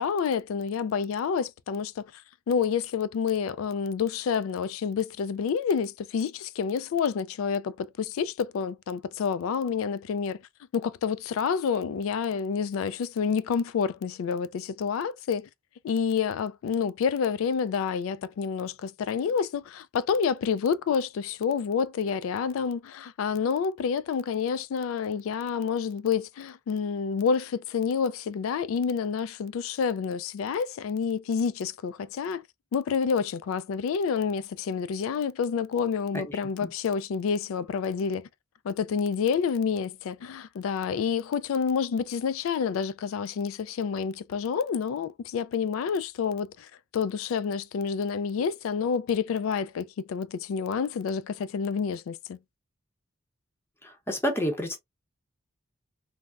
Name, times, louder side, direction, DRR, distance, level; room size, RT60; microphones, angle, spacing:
voice 1, 0.0-2.1 2.5-10.4 10.7-15.5 15.8-32.4 32.7-38.3 38.6-52.4, left 6 dB, 80° left, 0.3 m, -28 dB
voice 2, 36.1-36.7 54.1-54.8, equal, 10° left, 0.8 m, -29 dB
3.3 x 2.0 x 2.4 m
head